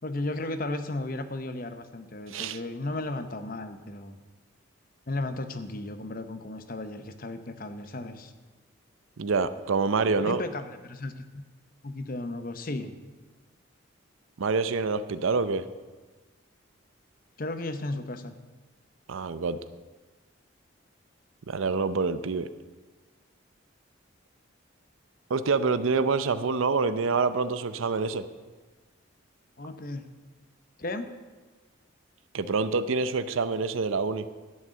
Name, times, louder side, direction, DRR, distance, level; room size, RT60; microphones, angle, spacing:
voice 1, 0.0-4.2 5.1-8.3 10.2-11.4 11.8-12.9 17.4-18.3 29.6-30.1 30.8-31.1, left 2 dB, 45° left, 9 dB, 0.8 m, -34 dB
voice 2, 2.3-2.6 9.2-10.4 14.4-15.6 19.1-19.6 21.5-22.5 25.3-28.3 32.3-34.2, right 4 dB, 85° right, 13 dB, 0.6 m, -26 dB
11.0 x 6.4 x 8.6 m, 1.3 s
head